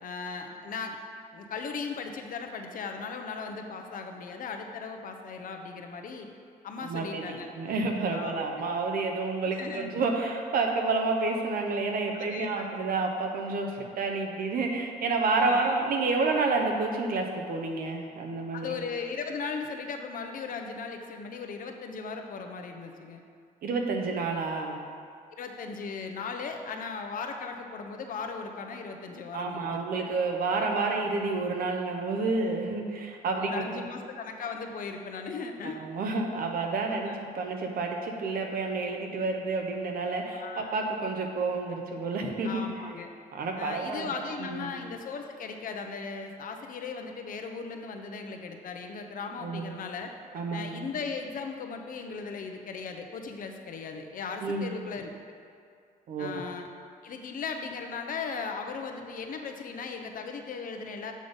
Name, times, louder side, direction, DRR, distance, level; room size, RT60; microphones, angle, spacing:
voice 1, 0.0-1.0 1.3-6.3 6.6-7.5 8.1-8.6 9.5-9.9 12.1-12.6 15.4-15.8 18.5-23.2 25.4-29.8 30.8-31.0 33.3-35.8 37.1-37.2 40.3-40.7 42.4-43.1 43.6-50.1 50.5-55.4 56.2-56.7 57.0-61.1, left 5 dB, 60° left, 4 dB, 0.7 m, -37 dB
voice 2, 6.8-18.7 23.6-24.8 29.3-33.9 35.6-42.6 43.3-44.1 44.4-44.7 49.4-49.7 50.3-50.9 54.4-54.7 56.1-56.4, right 3 dB, 65° right, 2 dB, 0.9 m, -29 dB
7.5 x 3.8 x 5.2 m, 2.3 s
cardioid pair, 90°, 16 cm